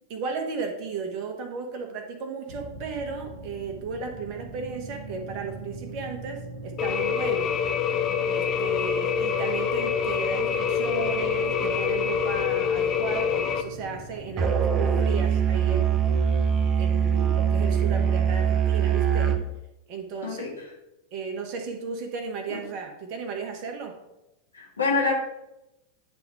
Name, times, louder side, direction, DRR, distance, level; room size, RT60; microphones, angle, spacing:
voice 1, 0.1-7.5 8.3-16.2 16.8-19.3 19.9-20.5 21.1-24.0, right 5 dB, 45° right, 4 dB, 1.4 m, -34 dB
sound 1, 2.5-18.4, right 2 dB, 75° right, 1.4 m, -39 dB
sound 2, 6.8-13.6, left 8 dB, 35° left, 0.6 m, -26 dB
Musical instrument, 14.4-19.5, right 7 dB, 30° right, 0.7 m, -23 dB
voice 2, 20.2-20.5 22.5-22.6 24.5-25.1, left 4 dB, 80° left, -1 dB, 1.8 m, -26 dB
9.4 x 3.7 x 4.7 m, 0.92 s
figure-of-eight pair, 90°, 0 cm